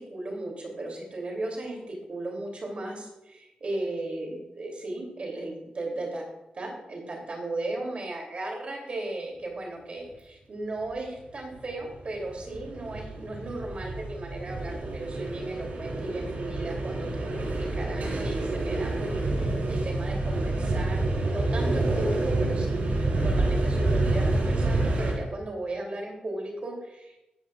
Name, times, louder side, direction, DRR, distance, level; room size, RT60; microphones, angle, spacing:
voice 1, 0.1-6.2 6.5-27.2, right 2 dB, 50° right, 0 dB, 3.1 m, -36 dB
sound 1, 11.5-25.1, right 2 dB, 90° right, 4.7 m, -28 dB
15.5 x 12.5 x 2.5 m, 0.96 s
wide cardioid pair, 150°, 3 cm